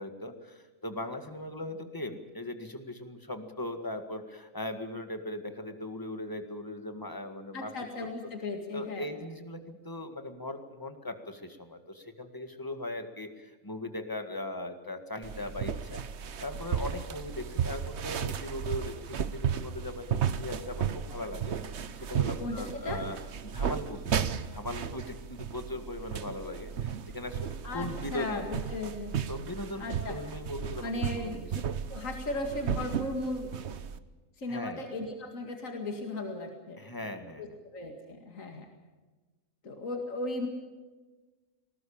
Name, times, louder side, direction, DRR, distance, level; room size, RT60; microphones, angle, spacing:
voice 1, 0.0-7.7 8.7-16.0 16.4-24.2 24.5-28.5 29.3-31.5 34.5-34.8 36.8-37.6, left 1 dB, 15° left, 7 dB, 1.8 m, -39 dB
voice 2, 7.5-9.1 22.4-23.0 27.6-29.2 29.8-30.2 30.8-31.6 31.9-33.5 34.4-36.8 37.4-38.7 39.6-40.5, left 2 dB, 70° left, 3 dB, 2.5 m, -36 dB
sound 1, 15.2-34.0, right 8 dB, 55° right, 1.1 m, -34 dB
20.5 x 18.5 x 8.7 m, 1.3 s
omnidirectional pair, 1.4 m